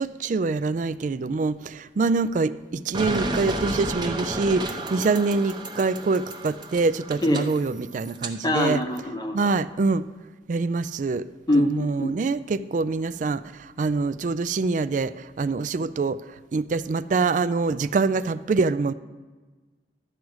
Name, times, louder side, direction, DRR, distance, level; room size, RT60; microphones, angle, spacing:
voice 1, 0.0-8.8 9.3-10.1 10.5-11.3 11.5-18.9, right 4 dB, 40° right, 15 dB, 0.3 m, -25 dB
sound 1, 2.9-8.3, right 1 dB, 25° right, 0.7 m, -32 dB
voice 2, 8.4-9.5 11.5-12.1, left 1 dB, 20° left, 3 dB, 0.8 m, -24 dB
12.0 x 4.8 x 7.9 m, 1.3 s
head